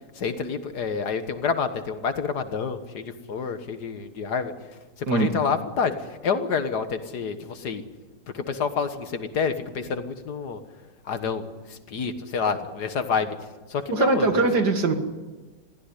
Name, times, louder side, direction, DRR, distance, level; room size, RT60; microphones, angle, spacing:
voice 1, 0.2-4.5 5.0-7.8 8.3-10.6 11.1-13.4 13.7-14.4, left 5 dB, 70° left, 9 dB, 2.0 m, -28 dB
voice 2, 13.9-15.0, right 3 dB, 75° right, 6 dB, 2.5 m, -21 dB
22.5 x 15.0 x 9.9 m, 1.2 s
omnidirectional pair, 1.8 m